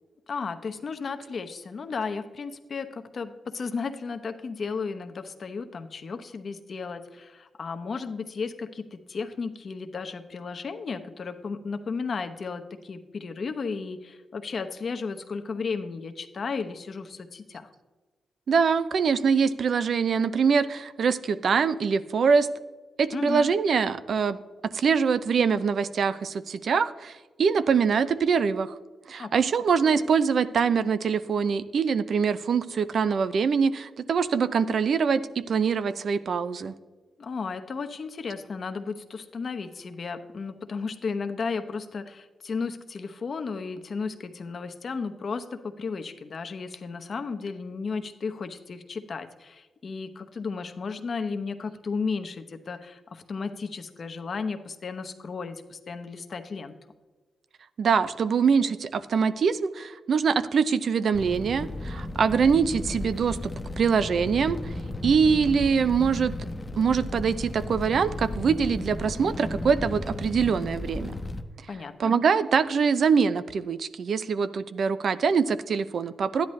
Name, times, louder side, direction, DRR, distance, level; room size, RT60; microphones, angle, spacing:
voice 1, 0.3-17.7 23.1-23.5 29.2-29.3 37.2-56.7 71.7-72.1, left 4 dB, 55° left, 8 dB, 0.9 m, -34 dB
voice 2, 18.5-22.5 23.0-24.4 24.7-28.8 29.1-36.7 57.8-64.6 65.0-66.3 66.8-71.1 72.0-76.5, right 6 dB, 65° right, 14 dB, 0.5 m, -24 dB
Fire, 61.1-71.4, left 2 dB, 20° left, 0.9 m, -34 dB
12.5 x 10.5 x 3.2 m, 1.3 s
cardioid pair, 85°, 0 cm